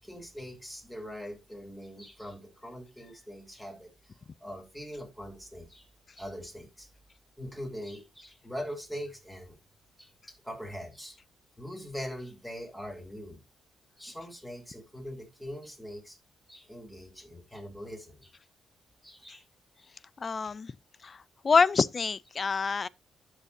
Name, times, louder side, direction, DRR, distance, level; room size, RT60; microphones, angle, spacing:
voice 1, 0.0-5.9 6.2-6.9 7.4-9.6 10.0-11.2 11.6-13.4 14.0-16.2 16.5-18.3 19.0-19.4, equal, 5° left, 3.6 m, -42 dB
voice 2, 20.2-20.7 21.0-21.2 21.4-22.9, left 5 dB, 40° left, 0.4 m, -26 dB
13.5 x 5.0 x 2.7 m
cardioid pair, 65°, 0 cm